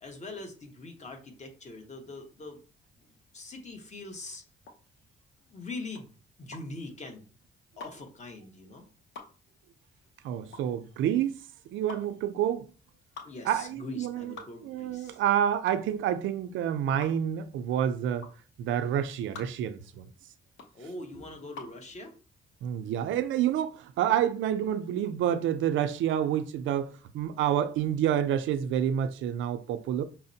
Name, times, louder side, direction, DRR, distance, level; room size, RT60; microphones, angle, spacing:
voice 1, 0.0-2.6 3.0-4.4 5.5-6.1 6.4-7.2 7.8-8.8 13.2-15.2 20.7-22.1 23.1-23.2, left 2 dB, 35° left, 1.0 m, -42 dB
sound 1, 4.6-21.8, left 4 dB, 70° left, 0.8 m, -48 dB
voice 2, 10.2-11.3 11.7-12.7 13.5-14.3 14.6-18.3 18.6-20.1 22.6-30.0, right 10 dB, 80° right, 0.4 m, -28 dB
5.7 x 2.0 x 2.7 m
cardioid pair, 90°, 20 cm